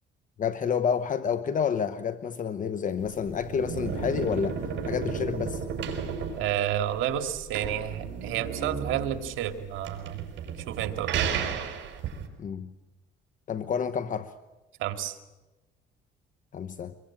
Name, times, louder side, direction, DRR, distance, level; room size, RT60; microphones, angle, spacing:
voice 1, 0.4-5.6 12.4-12.7 13.5-14.3 16.5-16.9, left 7 dB, 40° left, 11 dB, 1.0 m, -29 dB
sound 1, 3.0-12.3, right 6 dB, 65° right, 5.1 m, -33 dB
voice 2, 6.4-10.2 10.7-11.2 14.8-15.2, right 11 dB, 80° right, 7 dB, 2.3 m, -30 dB
24.5 x 22.0 x 8.8 m, 1.1 s
cardioid pair, 120°, 20 cm